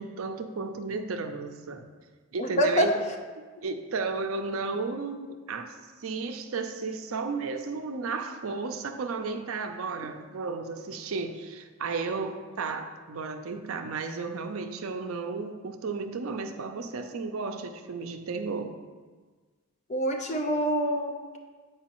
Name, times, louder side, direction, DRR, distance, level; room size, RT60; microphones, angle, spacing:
voice 1, 0.0-1.8 2.3-2.9 3.4-5.7 6.0-18.7, right 4 dB, 70° right, 6 dB, 0.5 m, -33 dB
voice 2, 2.4-2.9 19.9-21.4, equal, 30° left, 3 dB, 0.6 m, -26 dB
8.3 x 4.9 x 3.0 m, 1.4 s
head